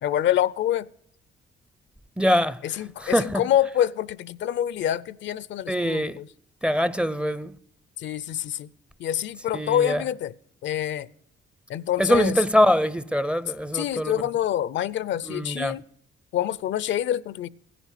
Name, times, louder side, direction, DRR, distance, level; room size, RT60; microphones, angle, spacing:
voice 1, 0.0-0.9 2.6-6.3 8.0-8.7 9.0-10.3 10.6-11.1 11.7-12.4 13.7-15.8 16.3-17.5, left 11 dB, 70° left, 0.5 m, -26 dB
voice 2, 2.2-2.6 3.0-3.4 5.7-6.2 6.6-7.5 9.5-10.0 12.0-14.1 15.3-15.7, equal, 5° right, 0.5 m, -23 dB
16.0 x 10.0 x 6.5 m
cardioid pair, 90°, 20 cm